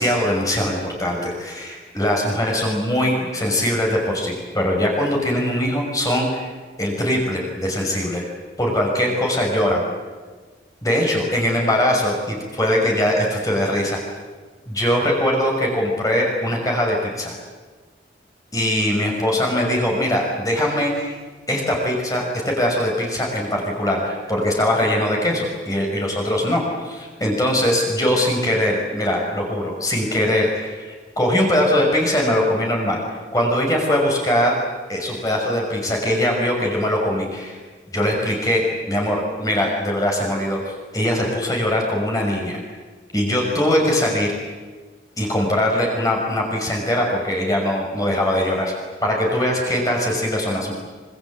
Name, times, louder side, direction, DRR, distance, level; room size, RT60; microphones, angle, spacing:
voice 1, 0.0-6.5 6.8-8.3 8.6-9.8 10.8-14.0 14.7-17.4 18.5-21.2 21.5-34.5 34.9-37.6 37.9-42.6 43.1-44.3 45.2-48.7 49.0-50.7, left 1 dB, 20° left, -1 dB, 6.0 m, -21 dB
26.0 x 24.5 x 8.7 m, 1.4 s
head